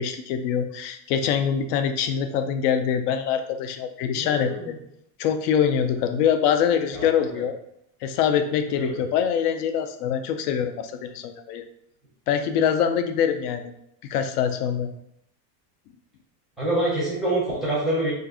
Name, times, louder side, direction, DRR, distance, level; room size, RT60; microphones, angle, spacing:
voice 1, 0.0-4.7 5.2-7.6 8.0-11.6 12.3-13.7 14.0-14.9, left 8 dB, 80° left, 8 dB, 0.6 m, -24 dB
voice 2, 4.2-4.7 6.9-7.3 8.8-9.0 16.6-18.1, right 1 dB, ahead, -8 dB, 0.5 m, -26 dB
2.5 x 2.5 x 3.6 m, 0.75 s
cardioid pair, 175°, 47 cm